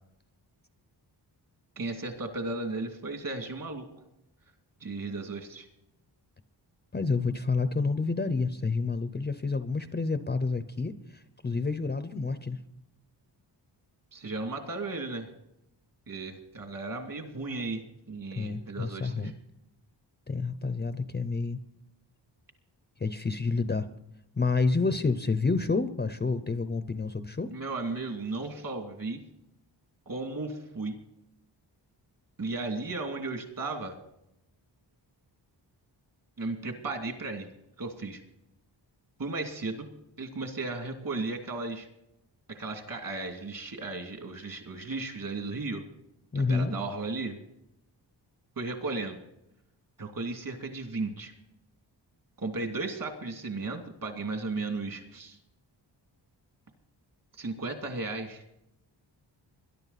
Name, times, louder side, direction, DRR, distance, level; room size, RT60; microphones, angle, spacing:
voice 1, 1.8-3.9 4.8-5.7 14.1-15.3 16.1-19.3 27.5-29.2 30.1-31.0 32.4-34.0 36.4-37.5 37.8-38.2 39.2-39.9 40.2-41.9 42.5-45.8 46.3-47.4 48.6-49.2 50.0-51.3 52.4-55.4 57.4-58.4, right 3 dB, 50° right, 5 dB, 2.5 m, -35 dB
voice 2, 6.9-12.6 18.4-19.3 20.3-21.6 23.0-23.9 24.3-27.5 46.3-46.7, left 4 dB, 25° left, 11 dB, 0.6 m, -29 dB
21.5 x 11.5 x 4.1 m, 0.83 s
wide cardioid pair, 165°, 44 cm